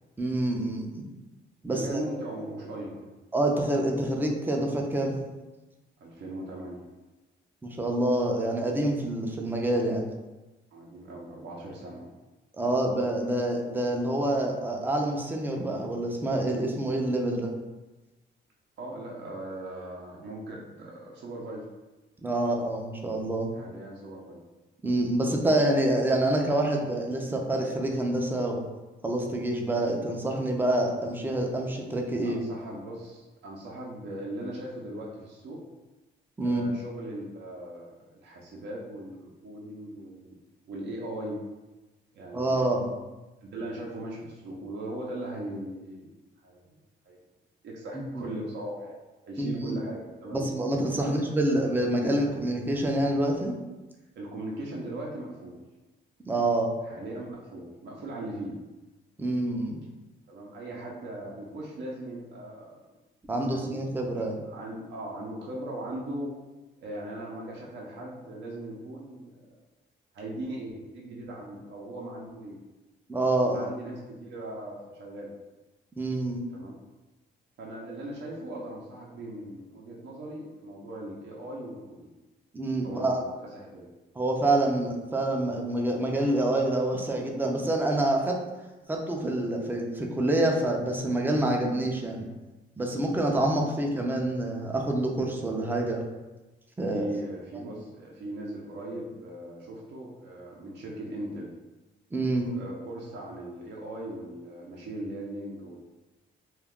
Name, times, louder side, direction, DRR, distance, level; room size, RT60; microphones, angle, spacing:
voice 1, 0.2-1.0 1.6-2.0 3.3-5.1 7.6-10.0 12.5-17.5 22.2-23.5 24.8-28.6 29.0-32.4 36.4-36.7 42.3-42.9 48.1-48.2 49.4-49.8 50.3-53.5 56.3-56.7 59.2-59.8 63.3-64.4 73.1-73.7 76.0-76.4 82.5-83.2 84.2-88.4 88.9-92.3 92.8-96.1 96.8-97.1 102.1-102.5, right 1 dB, 10° right, 1 dB, 0.4 m, -27 dB
voice 2, 1.7-3.1 6.0-6.8 9.3-9.4 10.7-12.1 18.8-21.7 23.5-24.4 32.2-35.6 36.4-40.4 40.7-41.4 42.1-42.7 43.4-46.1 46.4-46.7 47.1-47.2 47.6-48.9 49.2-50.4 51.0-51.2 54.2-55.6 56.8-58.6 60.3-62.9 63.4-63.9 64.2-66.3 66.8-69.6 70.1-72.6 73.4-75.3 76.5-76.8 77.6-82.1 82.8-83.9 96.9-101.5 102.4-105.8, right 1 dB, 60° right, -3 dB, 0.6 m, -39 dB
2.3 x 2.2 x 3.5 m, 1.1 s
cardioid pair, 90°, 20 cm